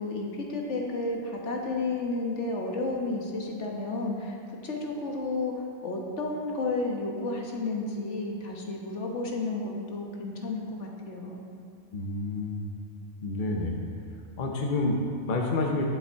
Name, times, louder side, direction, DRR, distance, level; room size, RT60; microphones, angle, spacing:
voice 1, 0.0-4.4 4.6-11.4, left 2 dB, 70° left, 0 dB, 1.5 m, -32 dB
voice 2, 11.9-12.8 13.2-13.8 14.4-15.8, left 2 dB, 45° left, 1 dB, 1.0 m, -29 dB
10.0 x 7.2 x 4.6 m, 2.4 s
omnidirectional pair, 1.3 m